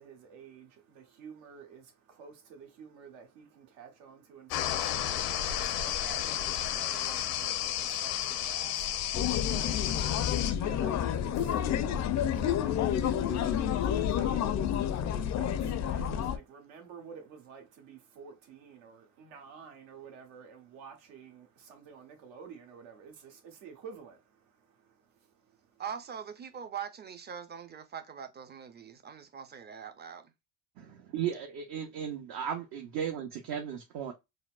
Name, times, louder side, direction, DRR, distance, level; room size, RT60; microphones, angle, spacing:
voice 1, 0.0-25.8, right 6 dB, 75° right, 1.2 m, -51 dB
sound 1, 4.5-10.5, left 11 dB, 80° left, 0.7 m, -32 dB
sound 2, 9.1-16.4, left 9 dB, 40° left, 0.4 m, -29 dB
voice 2, 25.8-30.3, right 7 dB, 25° right, 0.5 m, -42 dB
voice 3, 30.8-34.1, right 9 dB, 55° right, 0.7 m, -36 dB
4.1 x 2.0 x 2.3 m
supercardioid pair, 90°, 43 cm